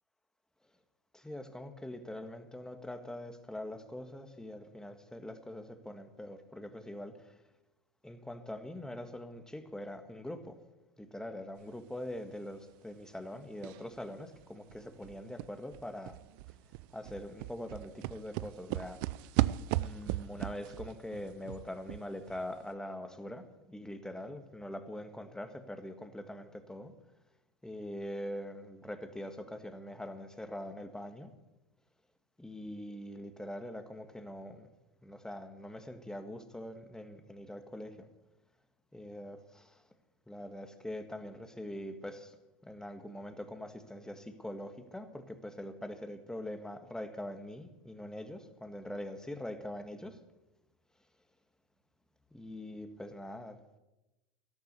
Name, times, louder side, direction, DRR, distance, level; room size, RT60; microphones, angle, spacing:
voice 1, 1.1-7.4 8.0-10.6 11.0-16.2 16.9-19.0 19.7-26.9 27.6-31.3 32.4-34.7 35.0-38.1 38.9-39.9 40.3-42.4 42.6-50.2 52.3-53.8, left 1 dB, 5° left, 8 dB, 1.7 m, -43 dB
sound 1, 13.6-14.0 14.3-14.4 14.7-22.4 22.7-22.8, right 16 dB, 65° right, 0.5 m, -36 dB
13.0 x 12.5 x 8.1 m, 1.0 s
hypercardioid pair, 95°, 12 cm